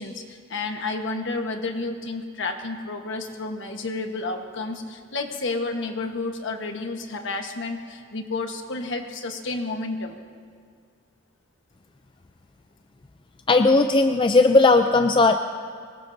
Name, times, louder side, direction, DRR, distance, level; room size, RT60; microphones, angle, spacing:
voice 1, 0.0-10.2, left 3 dB, 60° left, 4 dB, 1.3 m, -31 dB
voice 2, 13.5-15.4, left 3 dB, 25° left, 7 dB, 0.4 m, -17 dB
24.0 x 21.0 x 2.7 m, 2.1 s
head